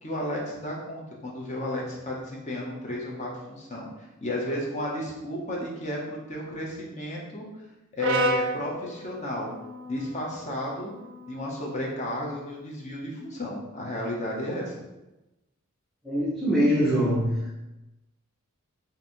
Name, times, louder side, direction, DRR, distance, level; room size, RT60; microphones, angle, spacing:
voice 1, 0.0-7.4 7.9-9.5 9.8-10.9 11.3-14.7, left 1 dB, 30° left, -3 dB, 0.8 m, -33 dB
Brass instrument, 8.0-12.2, right 1 dB, 55° right, 0.4 m, -33 dB
voice 2, 16.0-17.5, equal, ahead, -8 dB, 0.5 m, -23 dB
3.1 x 2.7 x 4.3 m, 1.0 s
head